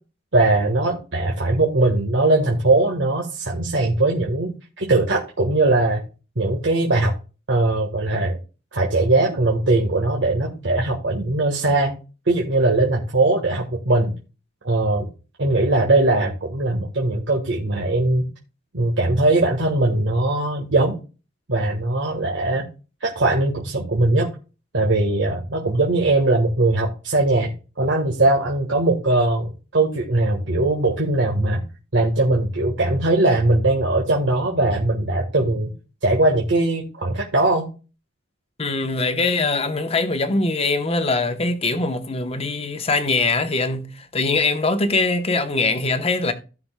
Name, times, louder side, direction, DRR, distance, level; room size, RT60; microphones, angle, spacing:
voice 1, 0.3-6.0 6.4-7.1 7.5-8.4 8.7-11.9 12.3-14.1 14.6-15.1 15.4-18.3 18.7-21.0 21.5-22.6 23.0-24.3 24.7-27.5 27.8-31.6 31.9-35.7 36.0-37.7, right 2 dB, 75° right, 1.5 m, -20 dB
voice 2, 38.6-46.3, left 3 dB, 30° left, 0.9 m, -22 dB
16.5 x 5.9 x 2.2 m
head